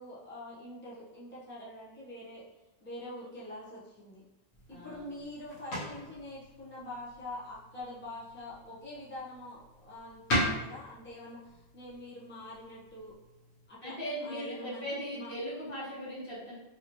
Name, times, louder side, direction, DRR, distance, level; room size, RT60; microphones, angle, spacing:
voice 1, 0.0-2.5 2.8-4.2 4.7-13.2 13.7-15.3, left 1 dB, 10° left, -8 dB, 0.7 m, -45 dB
sound 1, 4.5-13.7, equal, 90° left, 1.2 m, -39 dB
voice 2, 4.7-5.0 13.8-16.5, equal, 60° left, -8 dB, 1.4 m, -38 dB
3.0 x 2.7 x 2.9 m, 0.98 s
omnidirectional pair, 1.1 m